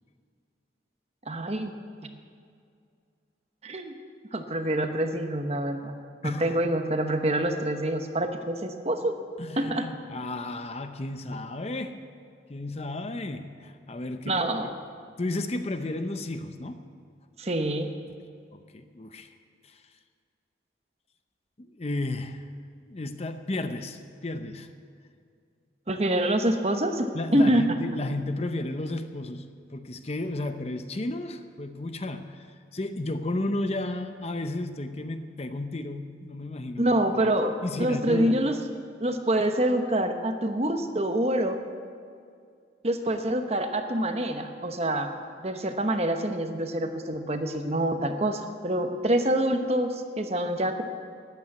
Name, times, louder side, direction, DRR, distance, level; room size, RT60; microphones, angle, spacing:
voice 1, 1.3-1.7 3.6-3.9 4.3-6.0 6.2-9.1 9.6-9.9 14.3-14.7 17.4-17.9 25.9-27.6 36.8-38.6 39.0-41.6 42.8-45.1 45.4-50.8, right 1 dB, 35° right, 6 dB, 0.9 m, -26 dB
voice 2, 6.2-6.6 9.4-12.0 12.5-14.4 15.2-16.9 18.5-19.3 19.6-19.8 21.6-22.5 22.9-24.7 27.1-36.9 37.2-37.3 37.6-38.4, left 2 dB, 35° left, 9 dB, 0.6 m, -33 dB
13.5 x 9.2 x 9.2 m, 2.3 s
head